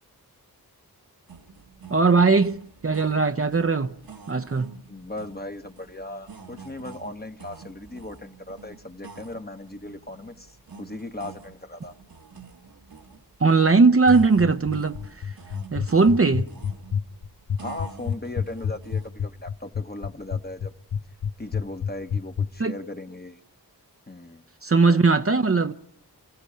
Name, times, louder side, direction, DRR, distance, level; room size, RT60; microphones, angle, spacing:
sound 1, 1.3-19.1, right 5 dB, 65° right, 1.6 m, -47 dB
voice 1, 1.9-3.9 4.3-4.7 13.4-15.3 15.7-16.5 22.6-22.7 24.6-25.7, right 4 dB, 35° right, 0.8 m, -19 dB
voice 2, 4.9-11.9 17.6-20.7 21.4-23.4 24.1-24.4, left 2 dB, 25° left, 1.2 m, -38 dB
sound 2, 14.1-22.5, left 7 dB, 85° left, 0.9 m, -27 dB
28.0 x 15.0 x 8.5 m
cardioid pair, 50°, 39 cm